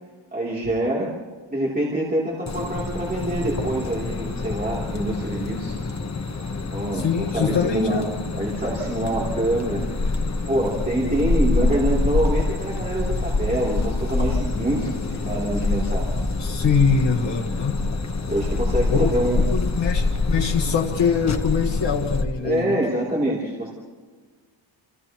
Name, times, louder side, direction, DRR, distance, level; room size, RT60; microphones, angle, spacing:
voice 1, 0.3-1.1 1.5-5.8 6.7-8.1 8.4-10.1 10.5-16.1 18.3-19.4 22.4-23.7, right 1 dB, 20° right, -5 dB, 3.3 m, -25 dB
sound 1, 2.5-22.2, left 3 dB, 35° left, 1.2 m, -26 dB
voice 2, 6.9-8.1 16.4-17.8 18.9-22.8, left 6 dB, 65° left, 0 dB, 1.6 m, -23 dB
29.5 x 28.5 x 3.1 m, 1.5 s
wide cardioid pair, 155°, 46 cm